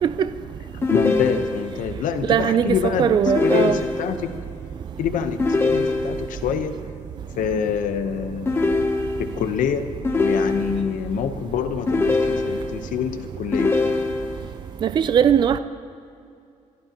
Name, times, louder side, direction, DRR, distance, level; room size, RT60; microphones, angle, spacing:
sound 1, 0.8-1.8 3.3-4.3 5.4-6.4 8.5-9.5 10.0-11.0 11.9-12.9 13.5-14.5, left 3 dB, 20° left, 0.8 m, -23 dB
voice 1, 0.9-3.1 3.4-4.3 5.0-6.7 7.4-8.7 9.2-9.9 10.1-13.7, left 7 dB, 85° left, 0.9 m, -26 dB
voice 2, 2.3-3.8 14.8-15.6, right 8 dB, 35° right, 0.4 m, -19 dB
29.5 x 12.0 x 2.9 m
wide cardioid pair, 180°, 13 cm